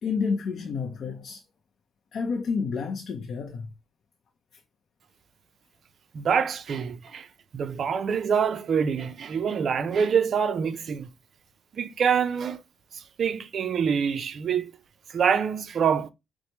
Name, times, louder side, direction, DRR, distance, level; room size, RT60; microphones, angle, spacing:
voice 1, 0.0-1.4 2.1-3.7, left 5 dB, 60° left, 0.6 m, -29 dB
voice 2, 6.1-7.3 7.5-11.1 11.7-12.6 12.9-14.7 15.1-16.1, right 7 dB, 55° right, 0.4 m, -25 dB
4.5 x 2.0 x 2.9 m
cardioid pair, 90°, 0 cm